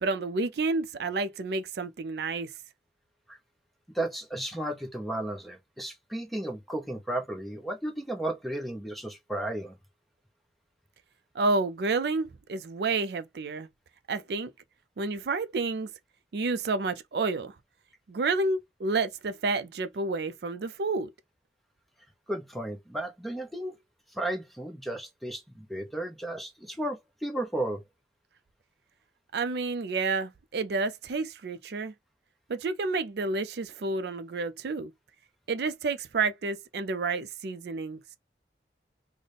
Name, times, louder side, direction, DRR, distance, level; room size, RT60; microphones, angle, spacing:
voice 1, 0.0-2.5 11.3-13.7 14.1-14.5 15.0-15.9 16.3-17.5 18.1-21.1 29.3-31.9 32.5-34.9 35.5-38.0, right 3 dB, 65° right, 0.4 m, -30 dB
voice 2, 3.9-9.8 22.3-23.8 24.1-27.8, right 1 dB, ahead, 0.7 m, -34 dB
4.0 x 2.1 x 3.3 m
head